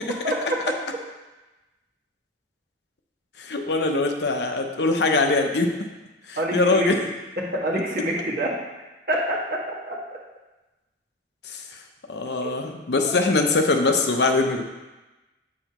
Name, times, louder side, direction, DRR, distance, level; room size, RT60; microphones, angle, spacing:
voice 1, 0.2-0.6 6.4-6.9 7.4-8.5 9.1-10.0 12.4-12.5, right 1 dB, 55° right, -5 dB, 1.8 m, -26 dB
voice 2, 3.4-5.7 6.3-7.0 11.5-11.6 12.1-14.6, left 3 dB, 75° left, 4 dB, 0.7 m, -22 dB
7.8 x 6.3 x 3.0 m, 1.1 s
head